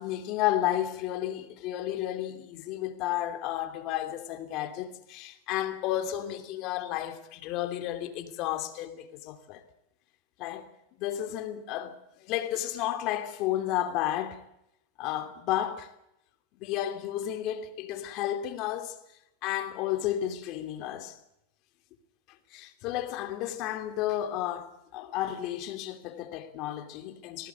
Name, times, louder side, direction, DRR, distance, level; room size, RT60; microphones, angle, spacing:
voice 1, 0.0-9.6 10.4-10.7 11.0-12.0 12.3-14.4 15.0-15.9 16.6-19.0 19.4-21.1 22.5-27.5, left 12 dB, 45° left, 2.9 m, -32 dB
19.5 x 18.0 x 8.4 m
supercardioid pair, 140°, 0 cm